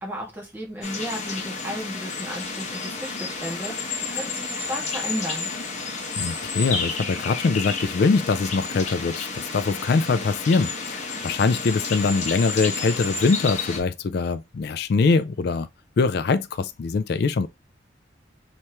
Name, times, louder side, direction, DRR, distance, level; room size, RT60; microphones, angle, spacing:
voice 1, 0.0-5.5, equal, 10° right, 1.9 m, -34 dB
sound 1, 0.8-13.8, left 4 dB, 40° left, 1.0 m, -31 dB
voice 2, 6.2-15.7 16.0-17.5, left 4 dB, 60° left, 0.4 m, -23 dB
4.3 x 3.4 x 3.0 m
head